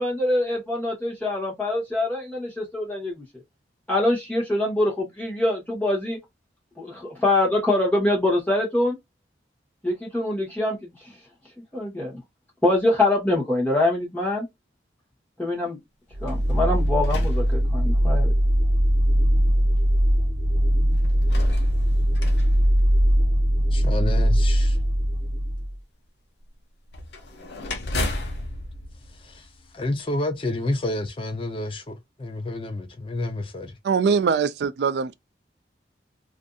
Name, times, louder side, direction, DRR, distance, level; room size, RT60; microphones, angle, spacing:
voice 1, 0.0-3.2 3.9-6.2 6.8-9.0 9.8-10.9 11.7-12.1 12.6-14.4 15.4-15.8 16.2-18.3, left 1 dB, 10° left, 1.0 m, -24 dB
sound 1, 16.1-25.8, equal, 85° right, 0.7 m, -20 dB
sound 2, 16.2-18.2 19.0-19.1 20.9-23.5 26.9-30.0, left 1 dB, 75° left, 0.7 m, -34 dB
voice 2, 23.7-24.8 29.2-29.4 29.7-33.7, left 2 dB, 30° left, 0.4 m, -29 dB
voice 3, 33.8-35.1, right 6 dB, 65° right, 0.3 m, -22 dB
2.5 x 2.5 x 2.2 m
head